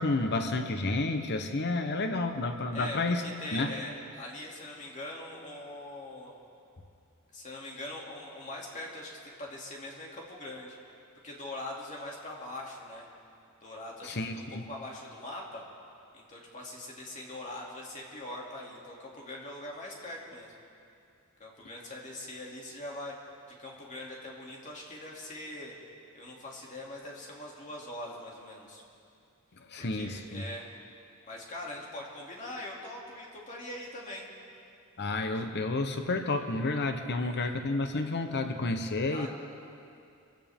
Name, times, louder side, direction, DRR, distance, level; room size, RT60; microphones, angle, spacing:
voice 1, 0.0-3.2 3.5-3.7 14.0-14.6 29.6-30.4 35.0-39.3, left 2 dB, 50° left, 6 dB, 0.9 m, -30 dB
voice 2, 2.7-6.3 7.3-10.8 11.2-13.1 13.6-15.6 16.1-20.5 21.4-23.1 23.6-25.7 26.1-28.8 29.8-30.7 31.3-34.3 37.2-37.5 39.1-39.3, left 1 dB, 35° left, -3 dB, 2.7 m, -42 dB
25.0 x 16.0 x 3.6 m, 2.5 s
head